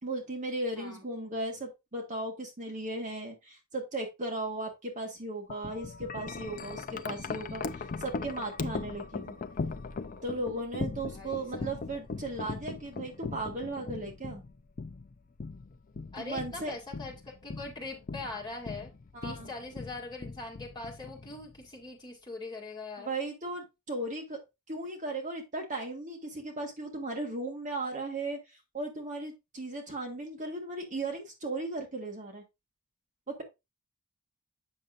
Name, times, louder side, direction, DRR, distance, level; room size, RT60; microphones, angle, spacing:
voice 1, 0.0-9.4 10.2-14.4 16.2-16.7 19.1-19.5 23.0-24.4 24.7-28.4 28.7-32.4 33.3-33.4, right 2 dB, 35° right, 1 dB, 1.7 m, -36 dB
Wind chime, 5.5-21.7, left 4 dB, 40° left, 0.5 m, -39 dB
voice 2, 11.1-11.7 16.1-18.9 19.2-23.1, left 3 dB, 20° left, -2 dB, 2.2 m, -42 dB
8.0 x 6.4 x 2.5 m, 0.23 s
head